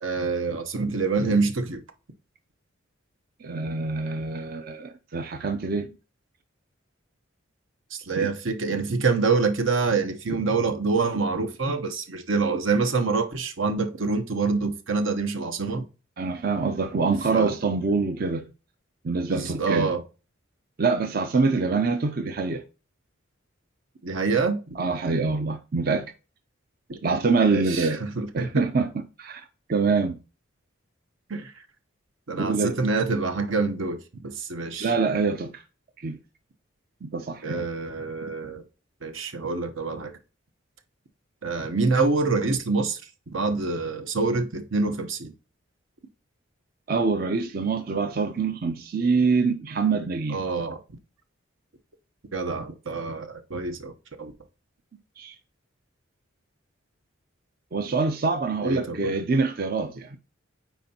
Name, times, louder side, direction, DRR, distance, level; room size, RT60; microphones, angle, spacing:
voice 1, 0.0-1.8 7.9-15.9 17.0-17.1 17.3-17.5 19.3-20.0 24.0-24.8 26.9-27.0 27.5-28.7 31.3-31.6 32.3-34.9 37.4-38.6 39.0-40.1 41.4-43.0 43.3-45.3 50.3-50.8 52.3-54.3 58.6-59.1, right 4 dB, 75° right, 0.9 m, -26 dB
voice 2, 3.4-5.9 8.2-8.3 16.2-18.5 19.0-19.9 20.8-22.6 24.8-26.1 27.0-28.0 28.3-30.2 32.4-32.8 34.8-35.6 36.0-36.2 37.0-37.6 46.9-50.4 55.2-55.4 57.7-60.2, right 4 dB, 45° right, 0.5 m, -25 dB
9.1 x 4.3 x 2.9 m
head